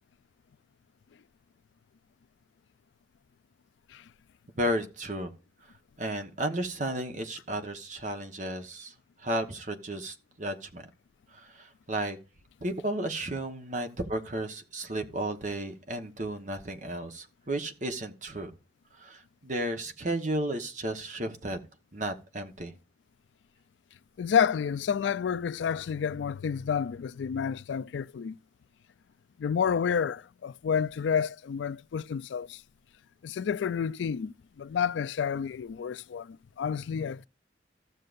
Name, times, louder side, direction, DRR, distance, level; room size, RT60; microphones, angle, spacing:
voice 1, 4.6-5.3 6.0-8.9 9.2-10.9 11.3-12.2 12.6-18.5 18.9-21.6 21.9-22.8, right 1 dB, 45° right, 1.1 m, -33 dB
voice 2, 24.2-28.3 29.4-32.6 33.2-37.3, left 7 dB, 85° left, 0.4 m, -30 dB
14.5 x 6.5 x 2.5 m
head